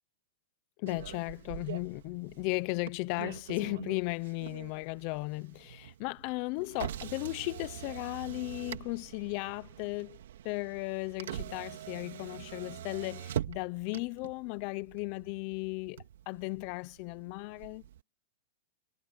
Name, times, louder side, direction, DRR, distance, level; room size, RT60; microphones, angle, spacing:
voice 1, 0.8-10.2 10.4-17.8, left 25 dB, 45° left, 0.7 m, -36 dB
Motor vehicle (road), 0.9-18.0, right 11 dB, 80° right, 2.8 m, -44 dB
supercardioid pair, 150°, 0 cm